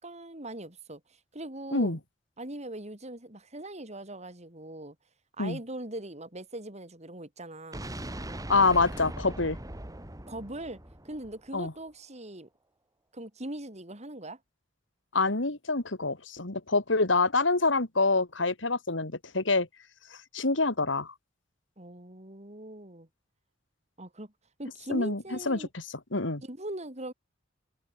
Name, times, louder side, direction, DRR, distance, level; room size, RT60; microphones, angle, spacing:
voice 1, 0.0-1.0 1.3-2.0 2.4-4.9 5.4-7.9 10.3-10.8 11.0-12.5 13.1-14.4 21.8-23.1 24.0-24.3 24.6-25.7 26.4-27.1, right 1 dB, 35° right, 5.1 m, -41 dB
sound 1, 7.7-11.7, right 1 dB, 20° right, 2.5 m, -40 dB
voice 2, 8.5-9.6 11.5-11.7 15.1-19.7 20.1-21.1 24.9-25.9 26.1-26.4, left 3 dB, 75° left, 2.6 m, -26 dB
head